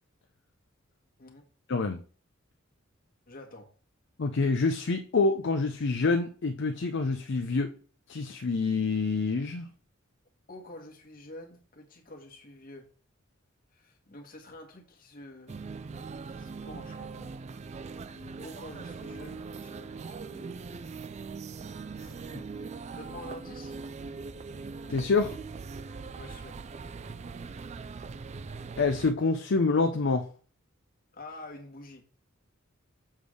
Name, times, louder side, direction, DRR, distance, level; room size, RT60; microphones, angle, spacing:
voice 1, 1.7-2.0 4.2-7.7 8.1-9.7 22.3-22.4 24.9-25.4 28.8-30.3, left 3 dB, 60° left, 6 dB, 0.6 m, -27 dB
voice 2, 3.3-3.7 10.5-12.8 13.7-15.6 16.3-17.4 18.4-20.5 22.0-22.2 22.9-23.8 26.2-26.6 31.1-32.0, left 2 dB, 45° left, 2 dB, 1.7 m, -47 dB
sound 1, 15.5-29.1, right 4 dB, 35° right, 0.4 m, -41 dB
7.3 x 3.5 x 6.3 m, 0.41 s
head